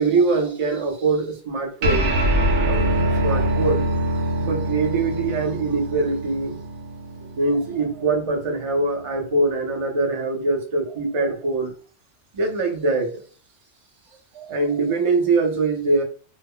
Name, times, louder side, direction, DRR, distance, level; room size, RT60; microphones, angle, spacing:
voice 1, 0.0-2.1 2.6-3.8 4.4-6.6 7.4-11.7 12.3-13.2 14.3-16.0, right 3 dB, 40° right, 0.4 m, -23 dB
sound 1, 1.8-8.6, right 1 dB, 75° right, 1.0 m, -24 dB
2.2 x 2.0 x 3.5 m
omnidirectional pair, 1.3 m